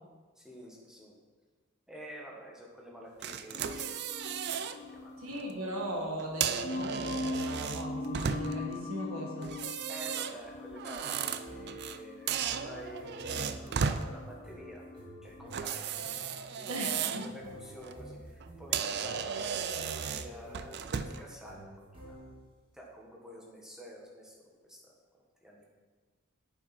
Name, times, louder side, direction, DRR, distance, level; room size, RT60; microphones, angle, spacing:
voice 1, 0.3-1.2 1.9-5.1 9.9-14.8 15.2-15.9 16.5-22.2 22.7-25.6, equal, 5° right, -3 dB, 1.6 m, -49 dB
sound 1, 3.2-4.8 5.2-5.4 6.2-8.7 9.4-12.0 12.3-14.1 15.5-17.3 17.7-18.0 18.4-18.5 18.7-21.3, right 7 dB, 50° right, 0.4 m, -35 dB
sound 2, 3.5-15.8, left 2 dB, 45° left, 0.9 m, -42 dB
voice 2, 5.2-9.5 16.7-17.2, equal, 80° right, -1 dB, 1.6 m, -38 dB
sound 3, 11.4-22.6, equal, 25° right, 1.9 m, -50 dB
8.9 x 7.5 x 4.3 m, 1.4 s
head